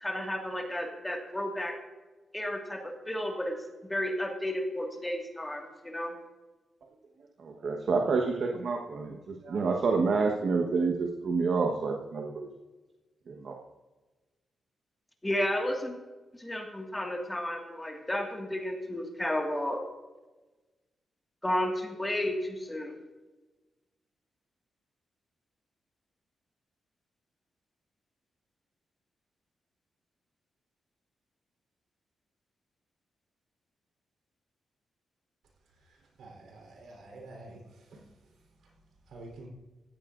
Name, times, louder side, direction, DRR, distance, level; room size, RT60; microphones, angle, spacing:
voice 1, 0.0-1.7 2.3-3.6 3.9-6.1 15.2-15.9 16.4-19.8 21.4-22.9, left 1 dB, 10° left, 2 dB, 1.8 m, -32 dB
voice 2, 7.4-12.5 13.3-13.5, right 4 dB, 55° right, 1 dB, 1.2 m, -28 dB
voice 3, 36.2-37.6 37.9-38.0 39.1-39.5, right 2 dB, 85° right, 0 dB, 3.9 m, -47 dB
17.0 x 15.0 x 2.6 m, 1.2 s
wide cardioid pair, 150°, 0 cm